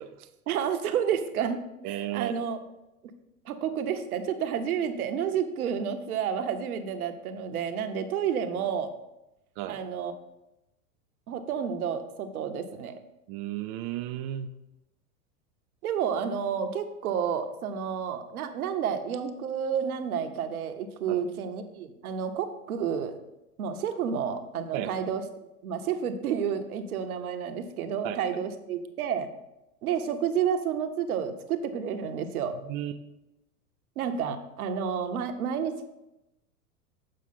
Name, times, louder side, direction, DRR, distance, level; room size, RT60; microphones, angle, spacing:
voice 1, 0.5-1.6 1.8-2.6 3.5-8.9 9.7-10.1 11.3-13.0 15.8-23.2 23.6-25.2 25.6-29.3 29.8-32.6 34.0-35.9, right 7 dB, 75° right, 8 dB, 0.9 m, -30 dB
voice 2, 1.8-2.3 9.6-9.8 13.3-14.5 21.1-21.2 24.7-25.0 28.0-28.2 32.7-32.9, right 12 dB, 35° right, 7 dB, 0.4 m, -34 dB
7.5 x 5.0 x 4.1 m, 0.93 s
hypercardioid pair, 100°, 44 cm